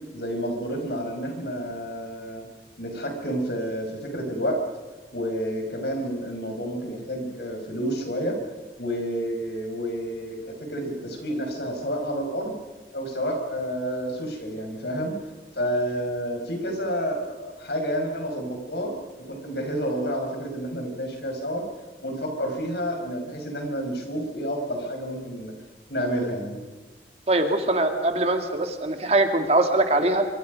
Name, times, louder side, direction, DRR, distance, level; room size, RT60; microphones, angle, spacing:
voice 1, 0.1-2.4 2.8-4.6 5.1-8.4 8.8-12.5 12.9-15.1 15.6-21.6 22.0-25.5 25.9-26.6, equal, 70° left, 3 dB, 5.7 m, -29 dB
voice 2, 27.3-30.3, right 2 dB, 35° right, 5 dB, 2.2 m, -22 dB
26.0 x 25.0 x 5.3 m, 1.3 s
head